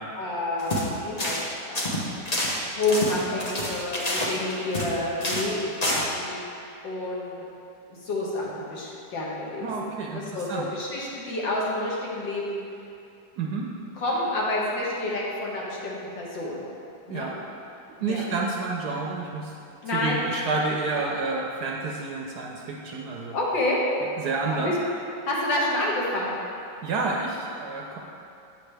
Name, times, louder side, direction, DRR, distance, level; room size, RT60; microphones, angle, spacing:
voice 1, 0.2-1.4 1.7-2.4 2.7-6.6 6.8-7.4 8.0-12.6 14.0-16.6 17.1-17.3 18.0-18.2 19.8-20.2 23.3-23.8 24.5-24.7 25.2-26.3, left 2 dB, 70° left, -4 dB, 1.9 m, -29 dB
sound 1, 0.6-0.9 1.2-1.5 1.7-4.9 5.2-5.5 5.8-6.0, left 1 dB, 45° left, 0.5 m, -28 dB
voice 2, 9.6-10.7 13.4-13.7 17.1-17.3 18.0-19.5 19.9-23.3 24.2-24.7 26.8-28.0, right 3 dB, 65° right, -1 dB, 1.1 m, -29 dB
8.2 x 6.5 x 3.4 m, 2.6 s
omnidirectional pair, 2.1 m